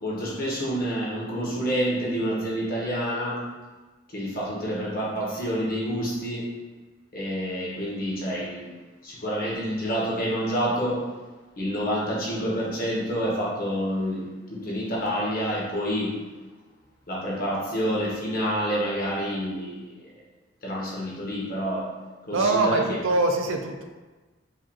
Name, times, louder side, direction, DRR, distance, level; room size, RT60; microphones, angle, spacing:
voice 1, 0.0-3.4 4.1-6.5 7.1-8.7 9.0-11.1 11.6-16.2 17.1-19.9 20.6-21.9 22.3-22.8, equal, 50° left, -4 dB, 1.1 m, -28 dB
voice 2, 22.3-23.8, right 2 dB, 85° right, 4 dB, 0.5 m, -23 dB
4.9 x 2.4 x 2.8 m, 1.2 s
head